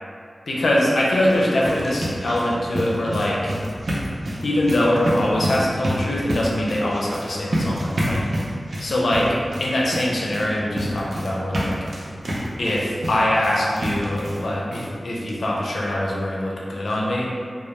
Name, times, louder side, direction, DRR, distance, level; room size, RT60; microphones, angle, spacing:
voice 1, 0.5-3.5 4.4-8.3 8.8-9.3 9.6-11.8 12.6-17.3, left 1 dB, 85° left, -4 dB, 0.4 m, -23 dB
sound 1, 1.2-14.5 14.7-14.8 15.3-15.4 15.7-15.8, equal, 75° right, 0.4 m, -28 dB
2.1 x 2.1 x 2.9 m, 2.2 s
cardioid pair, 50°, 0 cm